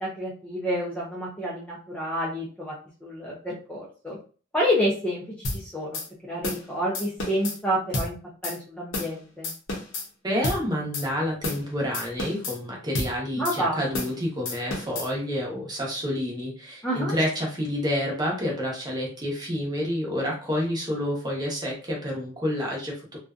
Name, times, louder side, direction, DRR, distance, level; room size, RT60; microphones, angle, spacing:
voice 1, 0.0-2.7 3.0-4.2 4.5-5.2 5.5-6.0 6.3-8.2 8.4-9.5 13.4-13.8 16.8-17.1, equal, 5° left, -4 dB, 0.5 m, -28 dB
sound 1, 5.4-5.6 5.9-6.1 6.4-6.6 6.9-7.6 7.9-8.1 8.4-8.6 8.9-9.1 9.4-10.1 10.4-10.6 10.9-11.1 11.4-11.6 11.9-12.6 12.9-13.1 13.4-13.6 13.9-14.2 14.5-15.1, left 2 dB, 75° left, 0.7 m, -30 dB
voice 2, 10.2-23.2, equal, 20° right, -2 dB, 0.9 m, -29 dB
2.6 x 2.2 x 2.4 m, 0.38 s
head